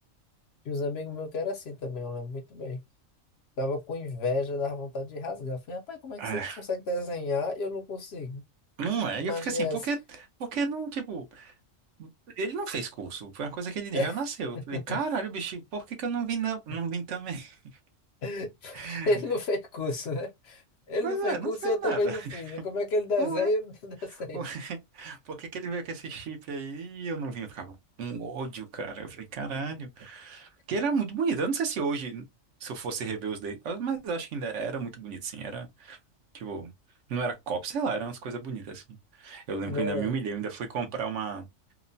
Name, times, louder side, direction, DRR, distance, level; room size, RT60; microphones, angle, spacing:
voice 1, 0.6-2.8 3.6-8.4 9.2-9.8 13.9-14.2 14.7-15.0 18.2-24.4 39.7-40.1, left 2 dB, 65° left, 0.7 m, -31 dB
voice 2, 6.2-6.6 8.8-10.0 10.4-11.5 12.0-12.1 12.4-17.6 18.7-19.1 21.0-22.4 23.2-23.5 24.3-32.2 32.6-36.0 36.3-36.7 37.1-41.5, right 5 dB, 70° right, 0.9 m, -33 dB
2.9 x 2.0 x 2.5 m
omnidirectional pair, 1.3 m